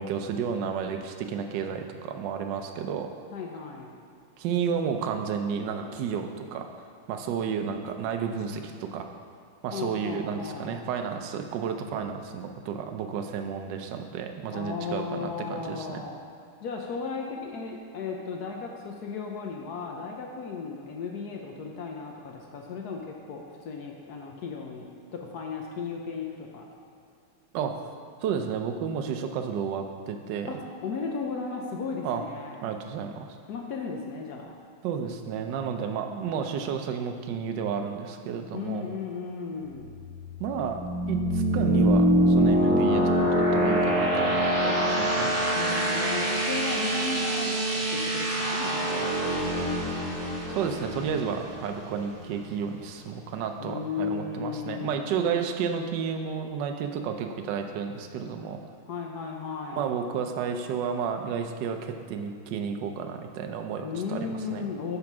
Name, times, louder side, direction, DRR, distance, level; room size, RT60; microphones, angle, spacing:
voice 1, 0.0-3.1 4.4-6.7 7.1-9.1 9.6-16.0 27.5-27.7 28.2-30.5 32.0-32.2 32.6-33.3 34.8-38.9 40.4-40.8 41.1-45.3 50.5-58.6 59.8-64.6, right 7 dB, 70° right, 5 dB, 1.1 m, -32 dB
voice 2, 3.3-4.0 9.7-10.8 14.5-16.2 16.6-26.6 30.5-32.5 33.5-34.5 38.5-39.9 45.5-49.1 53.6-55.2 58.9-59.8 63.8-65.0, left 5 dB, 70° left, 0 dB, 0.9 m, -35 dB
sound 1, 39.7-52.3, right 1 dB, 40° right, 1.5 m, -25 dB
9.5 x 3.9 x 6.0 m, 2.4 s
omnidirectional pair, 2.4 m